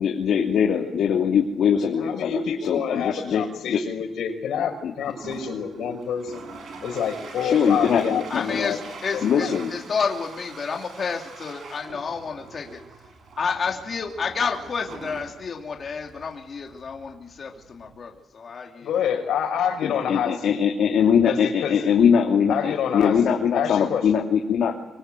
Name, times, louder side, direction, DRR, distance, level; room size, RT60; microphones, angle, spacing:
voice 1, 0.0-3.8 4.8-4.9 7.4-8.2 8.5-8.6 9.2-9.7 19.8-24.7, left 7 dB, 70° left, 1 dB, 2.9 m, -22 dB
voice 2, 2.0-6.4 6.8-8.8 9.1-9.5 18.8-20.6 21.3-21.8 22.5-24.0, left 8 dB, 85° left, 5 dB, 5.9 m, -27 dB
Toilet flush, 5.0-18.1, right 4 dB, 60° right, 7.2 m, -43 dB
voice 3, 8.3-12.8 13.4-18.9, left 5 dB, 40° left, 1 dB, 2.8 m, -30 dB
25.5 x 24.5 x 9.2 m, 0.96 s
wide cardioid pair, 160°, 0 cm